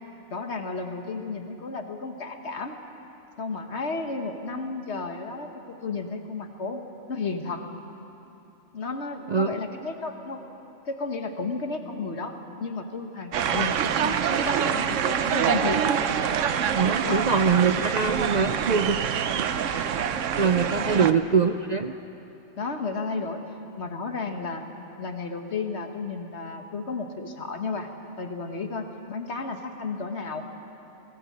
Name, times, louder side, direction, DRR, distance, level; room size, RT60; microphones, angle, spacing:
voice 1, 0.3-2.8 3.4-6.8 7.1-7.7 8.7-10.4 10.9-15.8 17.0-17.3 20.8-21.1 22.6-23.4 23.8-24.6 25.0-27.9 28.2-30.4, left 4 dB, 65° left, 5 dB, 1.6 m, -33 dB
sound 1, 13.3-21.1, right 8 dB, 85° right, 1.1 m, -25 dB
voice 2, 16.7-19.0 20.4-21.9, right 5 dB, 50° right, 7 dB, 0.5 m, -23 dB
19.5 x 16.0 x 8.6 m, 3.0 s
omnidirectional pair, 1.3 m